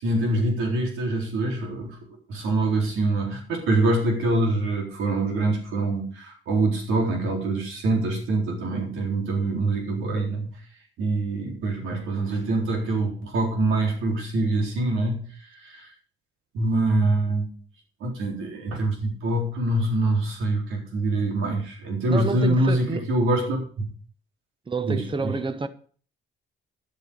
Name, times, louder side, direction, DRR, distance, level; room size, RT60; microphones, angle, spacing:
voice 1, 0.0-2.0 2.3-10.5 11.0-15.9 16.5-17.5 18.0-23.8 24.8-25.3, right 2 dB, 90° right, 4.1 m, -25 dB
voice 2, 22.1-23.1 24.7-25.7, right 4 dB, 25° right, 1.1 m, -28 dB
11.0 x 8.2 x 5.3 m
cardioid pair, 90°, 20 cm